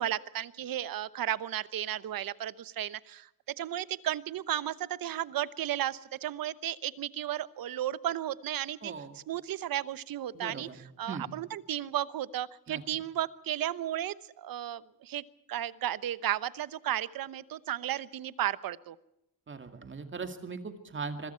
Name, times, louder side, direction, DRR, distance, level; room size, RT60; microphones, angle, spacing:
voice 1, 0.0-3.3 3.6-15.2 15.5-19.0, right 12 dB, 75° right, 16 dB, 1.0 m, -34 dB
voice 2, 8.8-9.2 10.3-10.8 11.1-11.3 12.7-12.8 19.5-21.3, right 4 dB, 35° right, 7 dB, 2.3 m, -39 dB
25.5 x 23.5 x 4.5 m, 0.84 s
wide cardioid pair, 155°, 35 cm